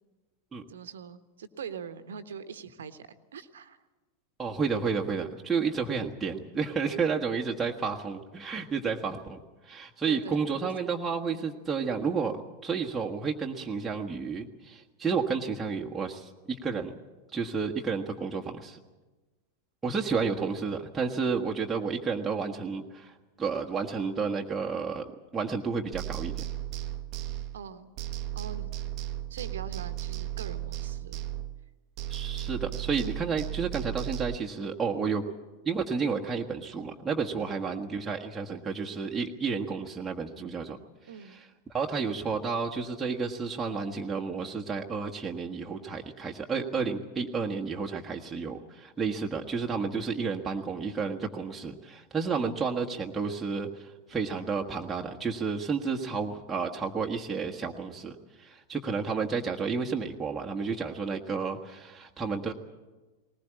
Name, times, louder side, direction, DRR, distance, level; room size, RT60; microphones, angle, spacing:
voice 1, 0.7-3.8 10.1-10.7 11.3-11.5 27.5-28.0 28.3-28.8 29.3-31.2 34.9-35.2 37.3-37.6 41.1-41.4 52.3-52.6, right 7 dB, 65° right, 11 dB, 1.2 m, -43 dB
voice 2, 4.4-9.4 9.6-12.3 12.6-17.0 17.3-18.8 19.8-23.1 23.4-25.1 25.3-26.4 32.1-35.2 35.6-40.8 41.7-58.1 58.4-62.5, right 5 dB, 10° right, 0 dB, 1.4 m, -31 dB
sound 1, 25.9-27.7 28.0-31.7 32.0-34.4, right 13 dB, 40° right, 0.9 m, -35 dB
20.0 x 19.5 x 8.5 m, 1.2 s
figure-of-eight pair, 90°, 0 cm